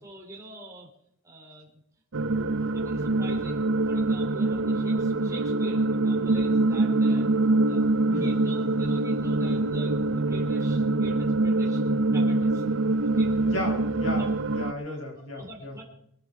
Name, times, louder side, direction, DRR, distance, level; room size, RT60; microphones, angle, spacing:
voice 1, 0.0-0.9 1.2-1.8 2.4-7.3 7.7-7.9 8.1-12.6 13.0-13.3 14.1-14.6 15.2-15.8, right 2 dB, 15° right, -1 dB, 3.3 m, -45 dB
sound 1, 2.1-14.7, right 2 dB, 60° right, 0.7 m, -24 dB
voice 2, 8.1-8.4 13.5-15.8, left 1 dB, 65° left, 2 dB, 5.7 m, -35 dB
23.5 x 11.0 x 4.8 m, 0.71 s
head